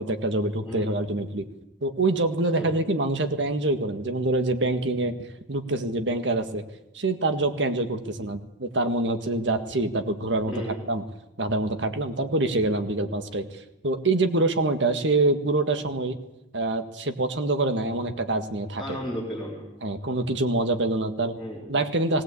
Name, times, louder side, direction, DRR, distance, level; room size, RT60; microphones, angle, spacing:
voice 1, 0.0-1.4 1.8-5.1 5.5-6.6 6.9-11.0 11.4-13.5 13.8-16.2 16.5-19.0 19.8-21.4 21.7-22.2, right 2 dB, 80° right, 7 dB, 1.8 m, -25 dB
voice 2, 0.6-1.0 2.6-2.8 8.0-8.1 10.5-10.8 18.8-19.7 21.4-21.8, equal, ahead, -4 dB, 3.9 m, -34 dB
19.5 x 17.5 x 8.5 m, 0.88 s
head